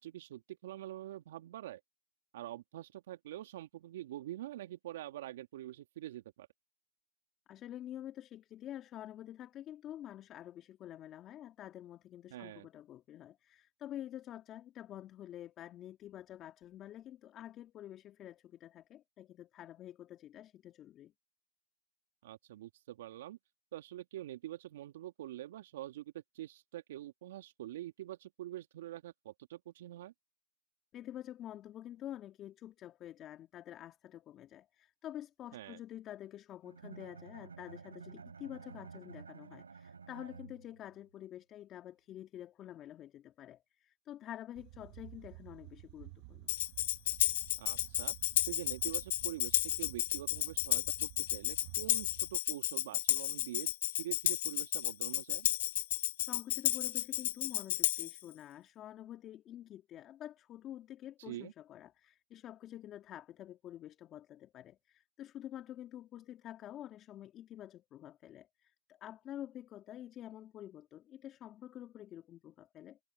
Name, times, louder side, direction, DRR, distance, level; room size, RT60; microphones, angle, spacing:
voice 1, 0.0-1.8 2.3-6.5 12.3-12.7 22.2-23.4 23.7-30.1 35.5-35.8 47.6-48.2 48.5-53.7 54.0-55.5 61.2-61.5, right 14 dB, 55° right, 2.6 m, -45 dB
voice 2, 7.5-21.1 30.9-46.5 56.3-73.0, left 12 dB, 25° left, 2.4 m, -48 dB
Bowed string instrument, 36.7-41.0, right 5 dB, 90° right, 5.2 m, -51 dB
sound 1, 44.6-52.4, right 24 dB, 40° right, 1.5 m, -52 dB
Tambourine, 46.5-58.2, left 14 dB, 50° left, 0.4 m, -33 dB
hypercardioid pair, 135°, 0 cm